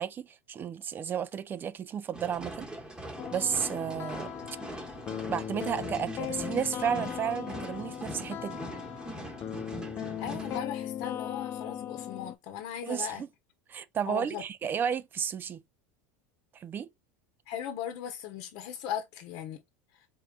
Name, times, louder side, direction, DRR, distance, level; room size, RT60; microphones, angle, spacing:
voice 1, 0.0-2.7 3.3-4.3 5.3-8.6 12.8-13.3 13.7-15.6 16.5-16.9, right 8 dB, 25° right, 0.5 m, -32 dB
sound 1, 2.1-10.6, right 1 dB, 10° right, 1.1 m, -42 dB
sound 2, 3.2-12.4, left 10 dB, 35° left, 0.4 m, -38 dB
voice 2, 10.2-13.2 14.1-14.4 17.5-19.6 19.9-20.1, left 9 dB, 60° left, 1.0 m, -38 dB
4.4 x 3.7 x 2.3 m
supercardioid pair, 130°, 7 cm